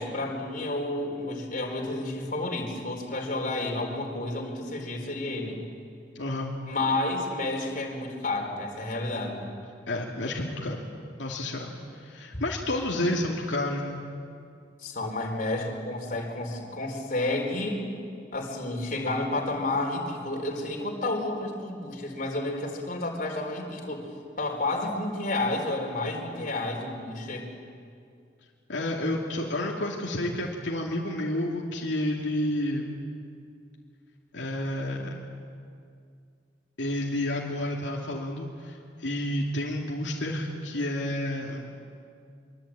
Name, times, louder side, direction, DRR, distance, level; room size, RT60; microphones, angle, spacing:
voice 1, 0.0-5.6 6.7-9.5 12.3-12.4 14.8-17.9 18.3-24.0 24.4-27.5, left 2 dB, 45° left, 1 dB, 4.3 m, -31 dB
voice 2, 6.1-6.6 9.9-10.8 11.2-11.7 11.9-14.0 28.7-33.0 34.3-35.2 36.8-41.7, left 1 dB, 75° left, -2 dB, 2.7 m, -30 dB
25.0 x 23.5 x 8.9 m, 2.3 s
head